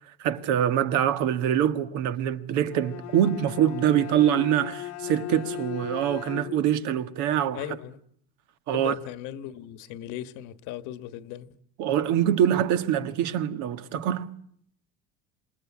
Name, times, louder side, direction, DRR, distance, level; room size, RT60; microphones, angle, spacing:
voice 1, 0.0-7.6 8.7-9.0 11.8-14.3, right 10 dB, 65° right, 1.7 m, -24 dB
Bowed string instrument, 2.6-6.9, left 13 dB, 55° left, 1.2 m, -38 dB
voice 2, 7.5-8.0 8.7-11.5, left 12 dB, 70° left, 1.5 m, -37 dB
27.0 x 21.0 x 8.6 m
cardioid pair, 140°, 31 cm